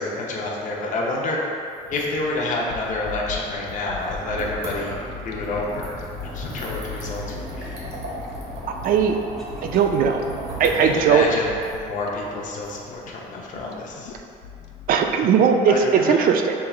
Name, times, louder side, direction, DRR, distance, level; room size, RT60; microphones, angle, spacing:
voice 1, 0.0-1.4 1.9-7.8 10.8-14.1 15.7-16.3, left 2 dB, 50° left, -2 dB, 0.7 m, -28 dB
sound 1, 1.7-13.6, right 2 dB, 80° right, 1.1 m, -39 dB
sound 2, 2.7-15.8, left 7 dB, 85° left, 0.4 m, -39 dB
sound 3, 4.1-11.4, equal, ahead, 0.6 m, -40 dB
voice 2, 8.8-9.2 9.6-10.2 10.6-11.3 14.9-15.8 16.0-16.5, right 7 dB, 60° right, 4 dB, 0.4 m, -18 dB
5.6 x 3.2 x 2.3 m, 2.4 s
cardioid pair, 110°, 17 cm